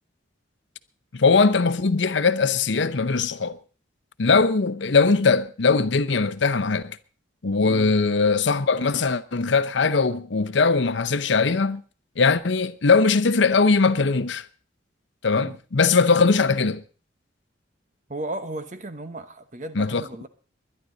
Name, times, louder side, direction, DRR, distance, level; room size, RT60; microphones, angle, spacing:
voice 1, 1.1-3.6 4.2-7.0 7.4-11.8 12.2-14.5 15.2-16.8 19.8-20.0, left 4 dB, 65° left, 0.7 m, -20 dB
voice 2, 18.1-20.3, right 1 dB, 40° right, 1.1 m, -35 dB
21.0 x 11.0 x 4.0 m
head